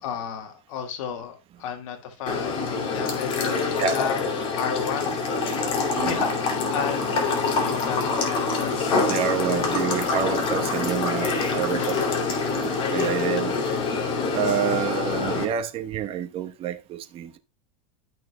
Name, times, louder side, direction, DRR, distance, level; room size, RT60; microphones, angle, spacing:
voice 1, 0.0-4.3 4.6-5.2 6.0-8.9 11.7-12.1, left 7 dB, 70° left, 1.9 m, -33 dB
sound 1, 2.3-15.4, left 4 dB, 30° left, 2.7 m, -25 dB
voice 2, 5.9-6.2 9.1-12.0 12.6-13.6 14.3-17.4, right 9 dB, 35° right, 1.1 m, -28 dB
13.0 x 6.2 x 2.2 m
supercardioid pair, 150°, 18 cm